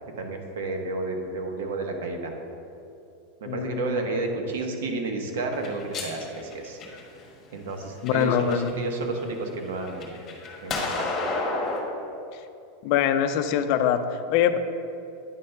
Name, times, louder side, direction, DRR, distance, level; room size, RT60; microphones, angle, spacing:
voice 1, 0.1-2.3 3.4-6.8 7.5-10.1 10.6-11.1, right 3 dB, 80° right, 4 dB, 1.0 m, -31 dB
voice 2, 3.5-4.0 8.0-8.7 12.8-14.6, left 9 dB, 50° left, 9 dB, 0.4 m, -23 dB
sound 1, 5.5-7.3 7.9-8.7 9.1-11.8, left 3 dB, 25° left, 1.4 m, -31 dB
9.4 x 3.3 x 5.7 m, 2.7 s
supercardioid pair, 150°, 0 cm